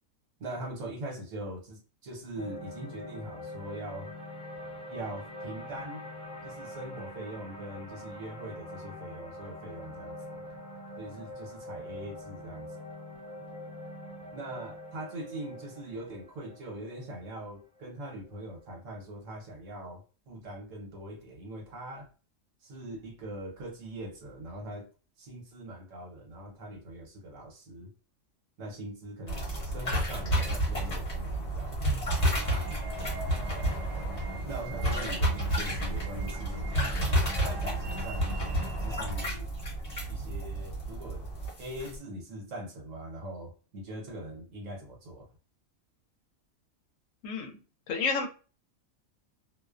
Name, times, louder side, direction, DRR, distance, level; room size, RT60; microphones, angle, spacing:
voice 1, 0.4-4.1 4.9-6.0 6.4-10.4 11.0-12.7 14.3-22.1 22.6-24.9 25.2-27.9 28.6-31.7 34.4-36.6 36.9-38.5 38.8-39.5 40.1-41.3 41.6-45.3, right 1 dB, 70° right, 1.2 m, -42 dB
sound 1, 2.4-18.6, left 1 dB, 5° left, 0.6 m, -44 dB
sound 2, 29.3-42.0, right 1 dB, 35° left, 0.9 m, -31 dB
sound 3, 32.2-39.0, right 3 dB, 50° right, 0.5 m, -43 dB
voice 2, 47.2-47.6 47.9-48.3, left 5 dB, 75° left, 0.9 m, -30 dB
2.5 x 2.0 x 2.4 m
omnidirectional pair, 1.4 m